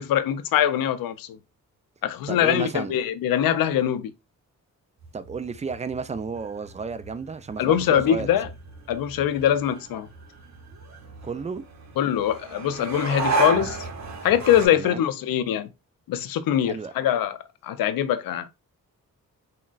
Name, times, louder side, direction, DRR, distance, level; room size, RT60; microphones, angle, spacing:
voice 1, 0.0-1.4 2.0-4.1 7.6-8.5 8.9-10.1 12.0-13.8 14.2-15.7 16.1-17.4 17.6-18.5, left 10 dB, 75° left, 0.5 m, -23 dB
voice 2, 2.3-2.9 5.1-8.3 11.2-11.6 14.7-15.0 16.6-16.9, right 5 dB, 20° right, 0.4 m, -32 dB
sound 1, 5.0-14.7, right 3 dB, 50° right, 0.9 m, -33 dB
3.8 x 2.2 x 2.4 m
supercardioid pair, 50°, 35 cm